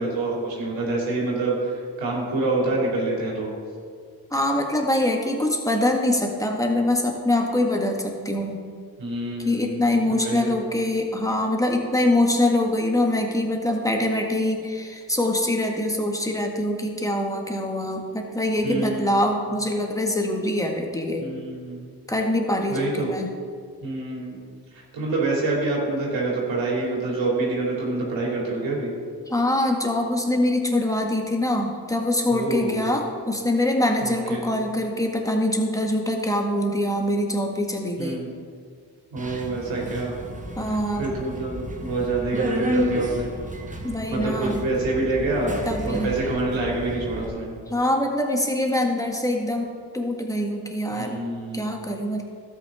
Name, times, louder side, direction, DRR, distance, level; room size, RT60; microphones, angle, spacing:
voice 1, 0.0-3.5 9.0-9.8 10.1-10.6 18.6-19.2 21.2-21.8 22.7-23.1 23.8-24.4 24.7-28.9 32.3-32.9 34.0-34.5 38.0-38.3 39.1-40.2 40.6-43.3 44.1-45.5 45.8-47.6 50.9-51.7, right 2 dB, 80° right, -4 dB, 3.0 m, -27 dB
voice 2, 4.3-8.6 9.4-21.2 22.1-23.3 29.3-38.2 40.6-41.1 43.8-44.6 45.7-46.1 47.7-51.2 51.5-52.2, left 1 dB, 5° left, 1 dB, 1.9 m, -24 dB
Subway metro underground, 39.2-47.3, equal, 15° right, 1.5 m, -31 dB
12.5 x 8.8 x 3.8 m, 2.1 s
supercardioid pair, 55°, 45 cm